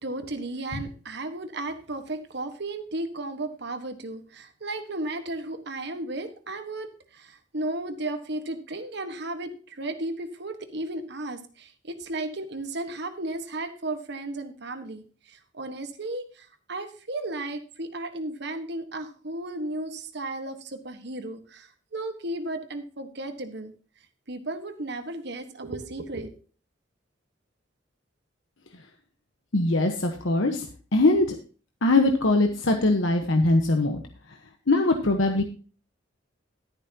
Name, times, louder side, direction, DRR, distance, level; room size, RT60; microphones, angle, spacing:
voice 1, 0.0-23.7 24.3-26.3, right 2 dB, 60° right, 8 dB, 1.4 m, -34 dB
voice 2, 29.5-31.3 31.8-34.0 34.7-35.4, left 2 dB, 85° left, 4 dB, 1.1 m, -22 dB
12.0 x 11.0 x 2.8 m, 0.38 s
head